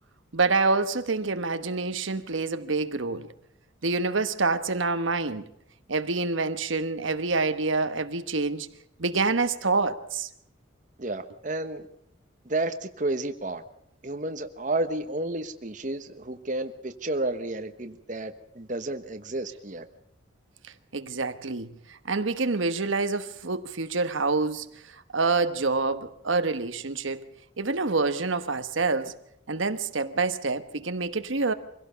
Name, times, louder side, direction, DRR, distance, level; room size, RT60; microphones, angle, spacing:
voice 1, 0.3-3.3 3.8-5.4 5.9-8.7 9.0-10.3 20.9-27.2 27.6-29.1 29.5-31.5, right 3 dB, 80° right, 1.2 m, -27 dB
voice 2, 11.0-11.8 12.5-13.6 14.0-19.8, right 2 dB, 40° right, 1.2 m, -31 dB
24.0 x 17.0 x 6.9 m
head